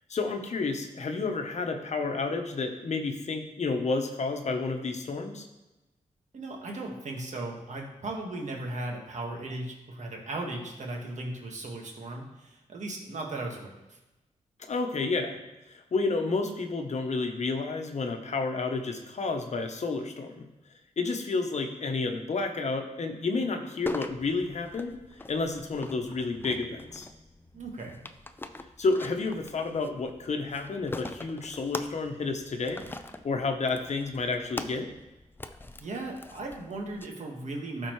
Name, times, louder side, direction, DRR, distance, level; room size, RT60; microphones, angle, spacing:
voice 1, 0.1-5.5 14.7-15.4 15.7-20.4 21.0-25.0 25.3-27.1 28.8-32.9 33.2-34.9, left 3 dB, 60° left, 5 dB, 1.0 m, -30 dB
voice 2, 6.3-14.0 27.5-28.0 35.8-37.9, right 2 dB, 65° right, 0 dB, 1.7 m, -37 dB
sound 1, 23.9-37.1, left 2 dB, 15° left, 0.5 m, -43 dB
12.5 x 4.4 x 3.2 m, 1.0 s
cardioid pair, 65°, 13 cm